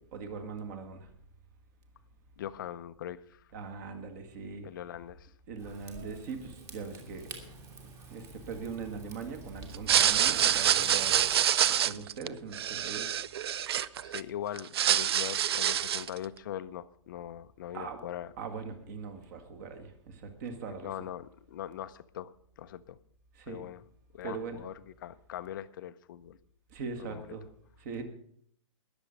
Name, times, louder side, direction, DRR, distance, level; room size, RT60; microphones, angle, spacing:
voice 1, 0.1-1.1 3.5-4.7 5.5-7.3 8.1-11.3 11.6-13.1 17.7-18.1 18.4-20.9 23.5-23.6 24.2-24.6 26.7-27.4 27.8-28.0, right 5 dB, 35° right, 6 dB, 1.9 m, -41 dB
voice 2, 2.4-3.4 4.6-5.3 7.3-7.5 11.0-11.1 14.0-18.3 20.8-22.3 22.6-23.0 23.5-23.8 24.1-26.4 27.0-27.4, left 11 dB, 40° left, 13 dB, 0.6 m, -41 dB
Rain / Fire, 5.6-11.4, right 3 dB, 20° right, 1.9 m, -47 dB
sound 1, 9.7-14.2 14.6-16.2, right 10 dB, 50° right, 0.5 m, -26 dB
20.5 x 7.1 x 5.2 m, 0.65 s
hypercardioid pair, 165°, 17 cm